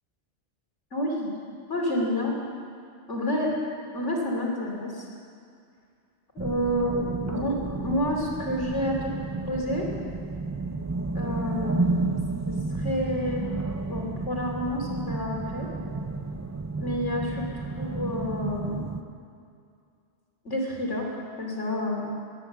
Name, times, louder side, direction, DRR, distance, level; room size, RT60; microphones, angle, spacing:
voice 1, 0.9-1.3 1.7-2.3 3.1-3.5 3.9-5.1 6.3-9.1 9.5-9.9 11.1-12.2 12.5-13.5 13.9-15.7 16.8-18.9 20.4-21.1 21.4-22.1, left 1 dB, 85° left, -1 dB, 3.3 m, -29 dB
sound 1, 6.4-19.0, right 3 dB, 25° right, 0.4 m, -31 dB
17.5 x 11.0 x 7.3 m, 2.3 s
omnidirectional pair, 1.2 m